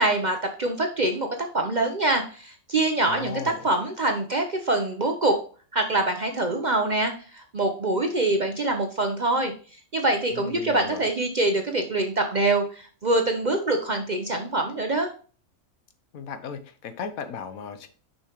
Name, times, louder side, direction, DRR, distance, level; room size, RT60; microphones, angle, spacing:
voice 1, 0.0-5.4 5.7-9.5 9.9-15.1, right 2 dB, 45° right, 4 dB, 0.6 m, -25 dB
voice 2, 3.1-3.7 10.3-11.1 16.1-17.9, left 6 dB, 80° left, 10 dB, 1.3 m, -36 dB
6.7 x 5.7 x 2.9 m, 0.39 s
omnidirectional pair, 1.5 m